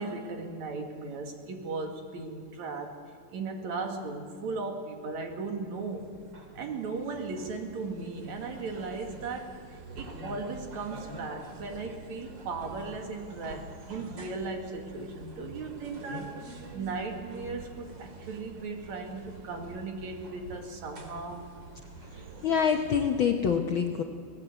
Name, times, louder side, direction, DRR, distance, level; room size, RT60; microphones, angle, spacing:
voice 1, 0.0-3.0 3.3-6.1 6.5-16.3 16.7-21.5, right 3 dB, 70° right, 4 dB, 3.4 m, -37 dB
sound 1, 5.2-23.3, right 3 dB, 40° right, 2.6 m, -47 dB
voice 2, 22.4-24.0, left 7 dB, 65° left, 3 dB, 1.3 m, -25 dB
25.0 x 17.5 x 8.0 m, 2.3 s
omnidirectional pair, 3.4 m